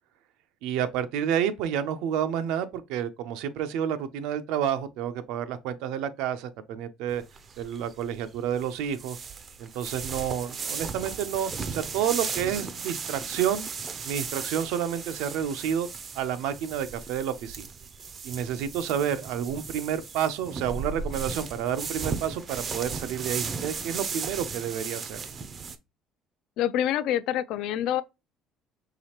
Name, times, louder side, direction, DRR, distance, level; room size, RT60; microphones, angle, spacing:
voice 1, 0.6-7.2 7.6-9.2 9.6-13.7 14.0-15.9 16.1-17.7 18.2-25.2, right 9 dB, 85° right, 0.5 m, -30 dB
sound 1, 7.1-25.8, right 5 dB, 30° right, 0.4 m, -36 dB
voice 2, 26.6-28.0, left 11 dB, 65° left, 0.3 m, -26 dB
4.8 x 3.1 x 2.9 m
cardioid pair, 165°, 0 cm